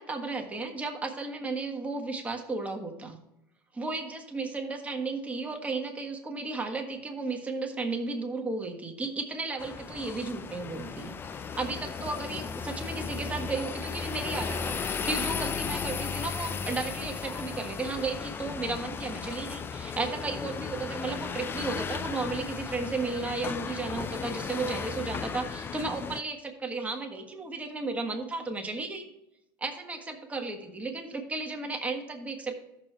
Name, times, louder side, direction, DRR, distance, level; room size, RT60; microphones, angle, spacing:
voice 1, 0.0-3.2 3.7-29.0 29.6-32.5, right 3 dB, 15° right, 2 dB, 1.4 m, -34 dB
sound 1, 9.6-26.2, left 6 dB, 20° left, 0.3 m, -35 dB
14.0 x 6.5 x 3.3 m, 0.87 s
supercardioid pair, 125°, 11 cm